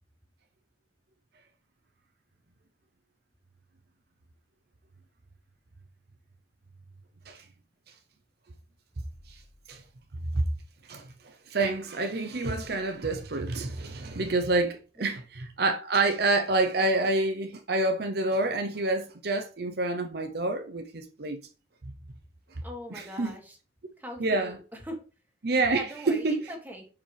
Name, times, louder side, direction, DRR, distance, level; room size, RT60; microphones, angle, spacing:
voice 1, 11.5-21.4 23.2-23.3 24.2-24.5 25.4-26.4, right 2 dB, 65° right, 0.8 m, -27 dB
voice 2, 22.6-23.6 24.0-25.0 25.7-26.9, equal, 10° right, 2.2 m, -41 dB
10.5 x 5.0 x 3.4 m
head